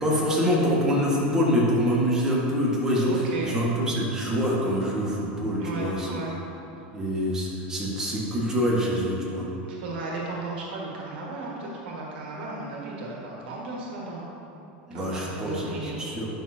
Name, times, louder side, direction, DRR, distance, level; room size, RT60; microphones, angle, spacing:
voice 1, 0.0-3.1 3.4-6.2 6.9-9.4 14.9-16.3, equal, 10° right, -6 dB, 1.6 m, -25 dB
voice 2, 3.0-3.6 5.6-6.3 9.7-14.3 14.9-16.0, right 3 dB, 90° right, -3 dB, 1.6 m, -35 dB
10.5 x 6.2 x 2.8 m, 2.9 s
supercardioid pair, 145°, 5 cm